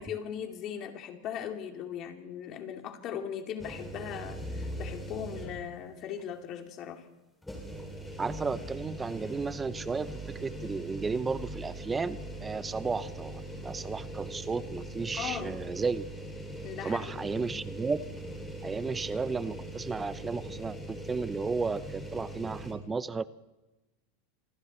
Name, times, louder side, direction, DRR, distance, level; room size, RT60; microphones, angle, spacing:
voice 1, 0.0-7.1 15.1-15.7 16.6-17.7, left 8 dB, 45° left, 4 dB, 2.9 m, -39 dB
sound 1, 3.6-5.8 6.2-6.3 7.4-22.7, right 1 dB, 5° left, 6.1 m, -41 dB
voice 2, 8.2-16.1 16.8-18.0 18.6-23.3, right 4 dB, 15° right, 15 dB, 0.7 m, -33 dB
27.0 x 23.0 x 4.4 m, 1.1 s
supercardioid pair, 125°, 0 cm